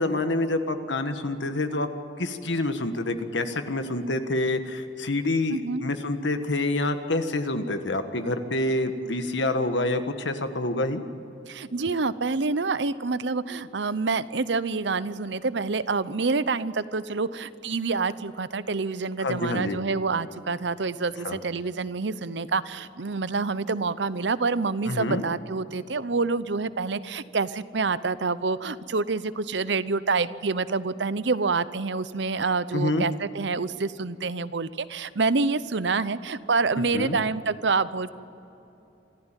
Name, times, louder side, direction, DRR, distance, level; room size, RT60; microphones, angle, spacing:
voice 1, 0.0-1.9 2.2-11.0 19.2-19.8 21.2-21.4 24.8-25.2 32.7-33.1 36.9-37.2, left 2 dB, 75° left, 8 dB, 1.6 m, -27 dB
voice 2, 5.5-5.8 11.5-38.1, right 4 dB, 70° right, 15 dB, 0.8 m, -27 dB
26.5 x 14.5 x 9.1 m, 3.0 s
head